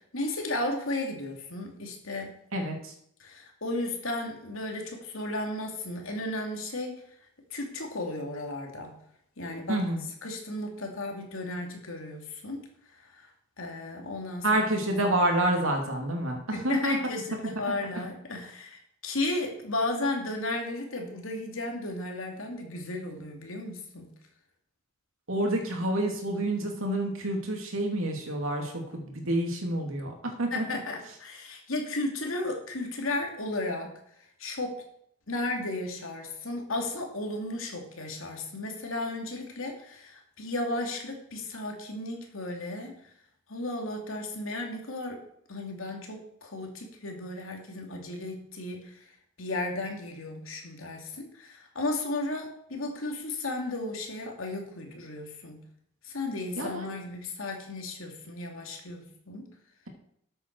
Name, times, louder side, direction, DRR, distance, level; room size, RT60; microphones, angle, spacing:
voice 1, 0.1-2.3 3.2-7.0 7.5-9.0 9.4-9.8 10.2-12.6 12.9-13.3 13.6-14.6 16.5-24.1 30.5-33.9 34.4-34.8 35.3-43.0 43.5-45.2 45.5-49.1 49.4-55.6 56.0-59.5, left 2 dB, 70° left, 2 dB, 2.6 m, -34 dB
voice 2, 2.5-2.9 9.7-10.0 14.4-17.0 25.3-30.6 56.6-56.9, right 1 dB, 75° right, 2 dB, 2.7 m, -28 dB
13.0 x 8.1 x 4.7 m, 0.70 s
head